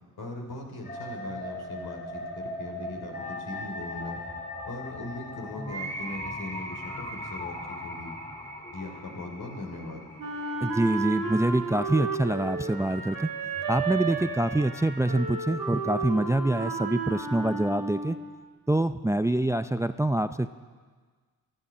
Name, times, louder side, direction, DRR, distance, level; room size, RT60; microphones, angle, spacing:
voice 1, 0.2-4.2 4.6-8.2 8.7-10.1, left 2 dB, 70° left, 2 dB, 3.2 m, -39 dB
sound 1, 0.8-14.8, left 1 dB, 20° left, 3.7 m, -39 dB
Wind instrument woodwind instrument, 10.2-18.4, right 4 dB, 70° right, 2.8 m, -33 dB
voice 2, 10.6-13.3 13.7-18.2 18.7-20.5, right 1 dB, 10° right, 11 dB, 0.5 m, -25 dB
16.5 x 12.0 x 6.2 m, 1.5 s
supercardioid pair, 50°, 38 cm